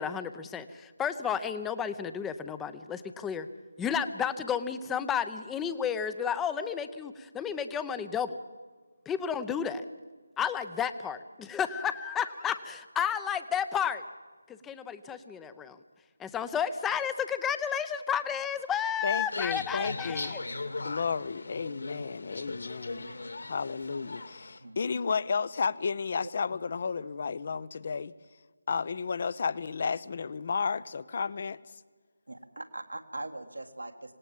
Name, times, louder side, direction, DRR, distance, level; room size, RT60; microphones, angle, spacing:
voice 1, 0.0-3.5 3.8-8.4 9.1-9.9 10.4-14.0 14.5-15.8 16.2-20.4, left 8 dB, 5° left, 12 dB, 0.8 m, -32 dB
voice 2, 19.0-20.3 20.8-23.1 23.4-28.1 28.7-31.6, left 5 dB, 40° left, 20 dB, 0.7 m, -32 dB
sound 1, 19.2-24.6, left 3 dB, 60° left, 2.4 m, -39 dB
voice 3, 32.3-34.1, right 2 dB, 75° right, 3 dB, 2.0 m, -41 dB
26.5 x 18.0 x 7.3 m, 1.4 s
figure-of-eight pair, 155°, 0 cm